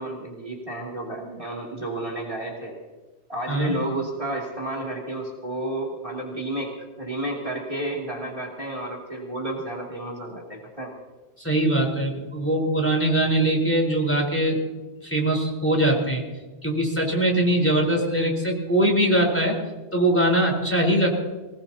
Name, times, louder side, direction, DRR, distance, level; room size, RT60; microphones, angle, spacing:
voice 1, 0.0-2.7 3.3-6.7 7.0-10.9, right 1 dB, 30° right, -3 dB, 2.8 m, -31 dB
voice 2, 11.4-14.6 15.0-16.2 16.6-19.6 19.9-21.2, right 1 dB, 10° left, -1 dB, 4.0 m, -22 dB
22.0 x 20.0 x 2.8 m, 1.2 s
omnidirectional pair, 1.2 m